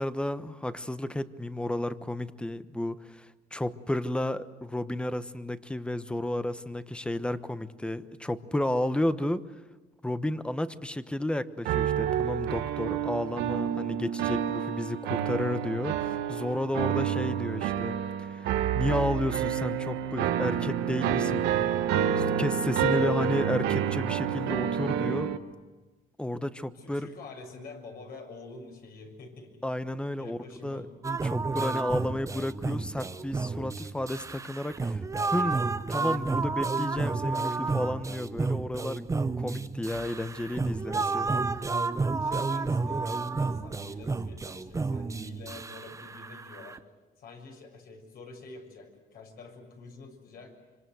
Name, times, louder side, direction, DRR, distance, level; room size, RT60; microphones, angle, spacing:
voice 1, 0.0-9.4 10.0-21.5 22.2-25.3 26.2-27.1 29.6-30.8 31.2-35.0 35.3-35.6 35.9-39.1 39.4-41.3, left 1 dB, 5° left, 12 dB, 1.1 m, -32 dB
sound 1, 11.6-25.4, right 9 dB, 85° right, 1.6 m, -29 dB
voice 2, 26.7-29.6 30.2-30.9 42.2-46.8 47.2-50.5, left 3 dB, 65° left, 3 dB, 6.8 m, -47 dB
sound 2, 31.0-46.8, right 3 dB, 20° right, 0.8 m, -31 dB
25.5 x 25.5 x 7.9 m, 1.2 s
cardioid pair, 110°, 17 cm